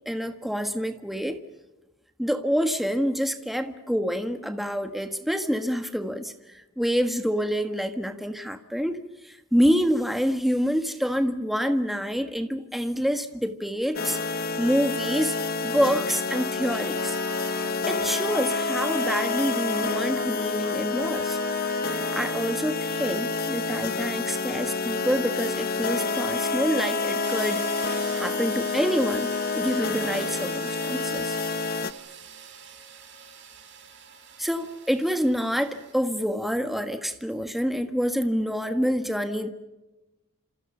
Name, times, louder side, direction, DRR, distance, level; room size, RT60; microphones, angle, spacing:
voice 1, 0.0-1.4 2.2-15.3 15.6-17.2 17.9-21.4 21.7-21.8 22.1-27.7 28.1-31.4 34.4-39.5, equal, ahead, 7 dB, 1.4 m, -27 dB
sound 1, 13.9-31.9, left 4 dB, 40° left, 0.9 m, -28 dB
Brass instrument, 16.3-22.5, right 4 dB, 80° right, 2.1 m, -42 dB
sound 2, 27.2-35.9, right 7 dB, 55° right, 5.7 m, -44 dB
29.5 x 27.5 x 5.6 m, 1.0 s
head